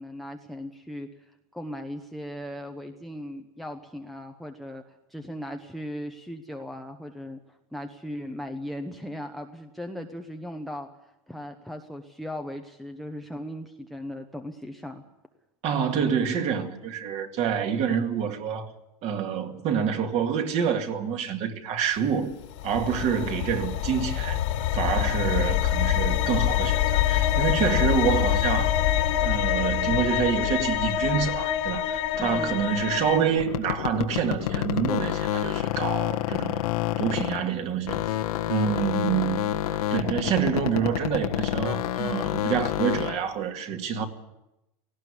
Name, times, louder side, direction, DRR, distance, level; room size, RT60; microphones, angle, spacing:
voice 1, 0.0-15.0 32.1-32.6 38.8-39.6, equal, ahead, 0.9 m, -38 dB
voice 2, 15.6-18.7 19.0-22.3 22.6-24.4 24.7-28.7 29.2-36.6 37.0-38.0 38.5-39.4 39.9-44.1, right 7 dB, 35° right, 2.2 m, -27 dB
sound 1, 22.4-33.2, left 11 dB, 60° left, 2.0 m, -25 dB
sound 2, 33.4-37.6 37.9-43.3, left 12 dB, 90° left, 1.7 m, -28 dB
18.0 x 16.5 x 9.8 m
supercardioid pair, 155°, 19 cm